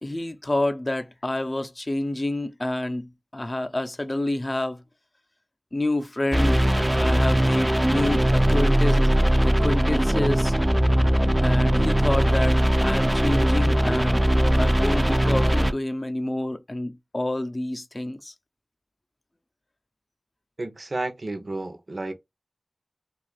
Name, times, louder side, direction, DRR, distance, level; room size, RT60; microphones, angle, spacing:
voice 1, 0.0-4.8 5.7-6.6 6.9-9.1 9.4-10.5 11.4-14.3 14.6-18.3, left 1 dB, 40° left, 0.5 m, -28 dB
sound 1, 6.3-15.7, right 1 dB, 20° right, 0.3 m, -20 dB
voice 2, 20.6-22.1, right 2 dB, 70° right, 0.6 m, -31 dB
2.6 x 2.4 x 3.8 m
wide cardioid pair, 45°, 0 cm